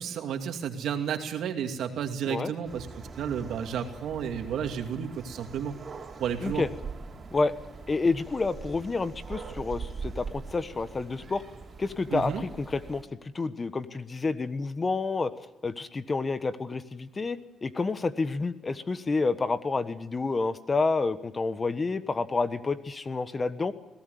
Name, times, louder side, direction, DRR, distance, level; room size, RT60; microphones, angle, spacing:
voice 1, 0.0-2.9 3.2-5.7 6.2-6.6 12.1-12.4, right 8 dB, 75° right, 5 dB, 2.5 m, -32 dB
sound 1, 2.6-13.0, right 4 dB, 40° right, 4.1 m, -42 dB
voice 2, 7.9-11.4 11.8-15.3 15.6-23.7, left 3 dB, 30° left, 12 dB, 1.3 m, -29 dB
21.5 x 17.5 x 9.3 m, 0.92 s
cardioid pair, 90°, 0 cm